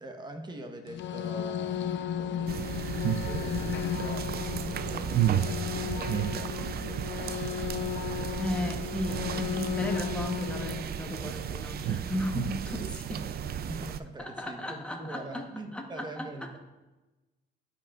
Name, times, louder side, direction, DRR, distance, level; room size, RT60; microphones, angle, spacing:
voice 1, 0.0-2.6 3.2-7.8 8.1-8.9 13.4-16.6, right 1 dB, 20° right, 5 dB, 0.9 m, -44 dB
sound 1, 0.9-10.8, left 9 dB, 65° left, 0.5 m, -35 dB
sound 2, 2.5-14.0, right 9 dB, 50° right, 0.4 m, -33 dB
voice 2, 8.4-13.3 14.2-15.5 15.7-16.3, left 1 dB, 5° left, 2 dB, 1.0 m, -35 dB
11.0 x 5.1 x 2.4 m, 1.1 s
cardioid pair, 90°, 20 cm